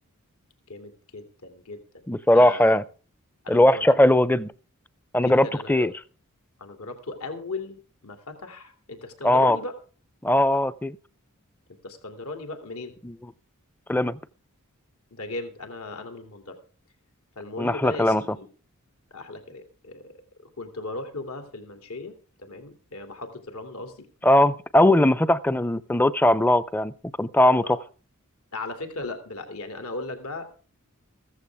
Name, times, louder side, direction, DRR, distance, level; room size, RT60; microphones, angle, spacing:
voice 1, 0.7-2.0 2.3-2.8 3.4-4.3 5.2-5.9 6.6-9.8 11.8-12.9 15.1-16.6 17.4-18.5 19.1-20.1 20.4-24.1 27.6-27.8 28.5-30.6, left 2 dB, 75° left, 2.8 m, -37 dB
voice 2, 2.1-2.8 3.5-4.5 5.1-5.9 9.2-9.6 10.2-11.0 13.0-13.1 13.9-14.2 17.6-18.2 24.2-26.9 27.2-27.8, left 1 dB, 10° left, 0.6 m, -19 dB
15.5 x 14.5 x 3.5 m
head